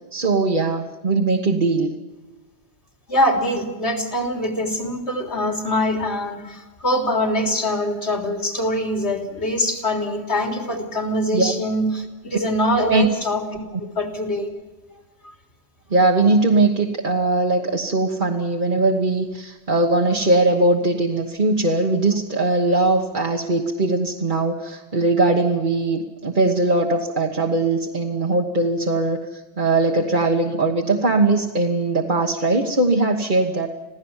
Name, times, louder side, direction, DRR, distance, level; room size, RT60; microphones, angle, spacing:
voice 1, 0.1-1.9 11.3-11.5 12.8-13.1 15.9-33.7, right 2 dB, 45° right, 2 dB, 1.5 m, -20 dB
voice 2, 3.1-13.6 14.0-14.5 15.2-15.3, left 1 dB, 70° left, 3 dB, 3.7 m, -23 dB
27.0 x 16.5 x 7.3 m, 1.3 s
omnidirectional pair, 1.1 m